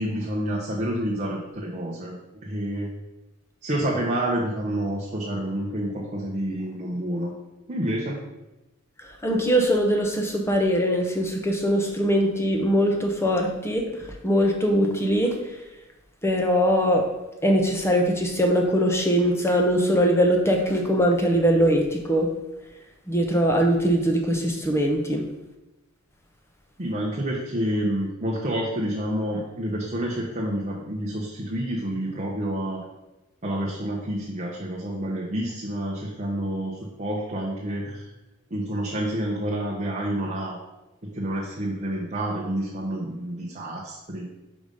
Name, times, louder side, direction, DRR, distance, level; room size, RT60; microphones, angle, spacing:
voice 1, 0.0-2.1 2.4-2.9 3.6-7.3 7.7-8.2 26.8-32.8 33.4-38.1 38.5-40.6 41.0-44.2, right 1 dB, 35° right, -3 dB, 0.9 m, -28 dB
voice 2, 9.0-15.4 16.2-17.1 17.4-22.3 23.1-25.2, equal, 10° left, 2 dB, 0.8 m, -22 dB
5.1 x 4.9 x 5.3 m, 1.0 s
head